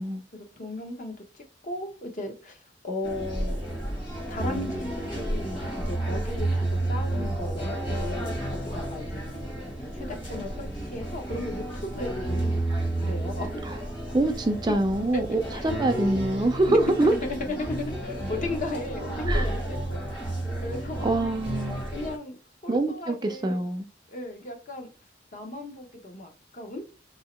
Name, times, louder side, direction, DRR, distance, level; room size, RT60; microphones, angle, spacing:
voice 1, 0.3-3.6 4.3-9.3 9.9-12.6 13.0-13.5 15.1-15.2 15.6-15.8 16.7-20.2 20.6-21.1 21.9-23.6 24.1-24.9 25.3-26.8, left 2 dB, 45° left, 0.9 m, -36 dB
sound 1, 3.0-22.2, right 1 dB, 25° left, 1.2 m, -31 dB
voice 2, 14.1-17.1 19.3-19.5 21.0-21.8 22.7-23.9, right 2 dB, 25° right, 0.4 m, -25 dB
2.9 x 2.8 x 4.3 m
head